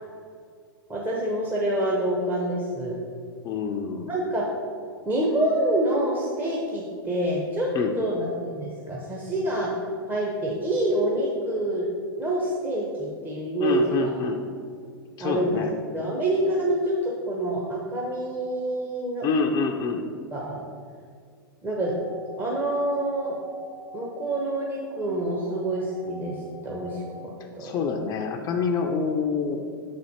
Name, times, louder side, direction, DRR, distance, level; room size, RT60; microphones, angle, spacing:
voice 1, 0.9-3.0 4.1-4.4 5.1-7.7 8.0-9.7 10.1-11.8 12.2-14.1 15.2-15.6 15.9-19.2 20.3-20.6 21.6-21.9 22.4-23.4 23.9-27.3 27.6-27.7, right 1 dB, 15° right, -4 dB, 0.8 m, -27 dB
voice 2, 3.4-4.1 7.7-7.9 13.6-14.4 15.2-15.7 19.2-20.0 27.6-29.6, left 5 dB, 30° left, 2 dB, 0.5 m, -26 dB
sound 1, 21.8-27.6, right 3 dB, 70° right, 1.1 m, -46 dB
6.1 x 4.2 x 4.2 m, 2.2 s
hypercardioid pair, 105°, 12 cm